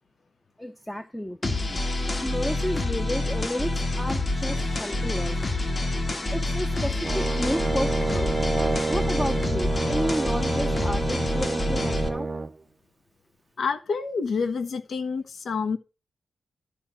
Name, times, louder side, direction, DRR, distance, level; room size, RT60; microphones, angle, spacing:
voice 1, 0.6-1.4 2.2-5.5 6.3-8.3 8.9-12.3, equal, 5° left, 8 dB, 0.8 m, -31 dB
sound 1, 1.4-12.1, left 2 dB, 30° left, 1.8 m, -27 dB
Brass instrument, 7.0-12.5, right 3 dB, 30° right, 0.5 m, -28 dB
voice 2, 13.6-15.8, left 5 dB, 60° left, 8 dB, 1.2 m, -28 dB
12.5 x 4.4 x 7.6 m, 0.29 s
wide cardioid pair, 145°, 0 cm